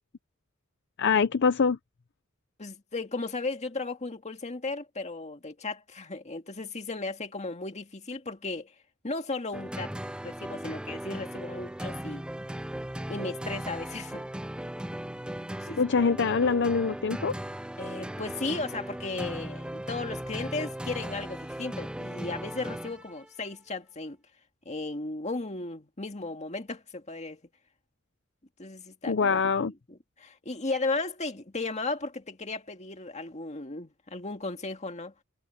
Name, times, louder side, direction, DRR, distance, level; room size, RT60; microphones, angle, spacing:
voice 1, 1.0-1.8 15.8-17.3 29.1-29.7, left 5 dB, 60° left, 0.6 m, -24 dB
voice 2, 2.6-8.7 9.0-9.9 10.2-12.3 13.1-14.2 15.6-15.8 17.8-24.2 24.7-27.4 28.6-29.5 29.9-35.1, left 3 dB, 35° left, 2.0 m, -35 dB
sound 1, 9.5-23.3, right 1 dB, 5° right, 0.5 m, -37 dB
head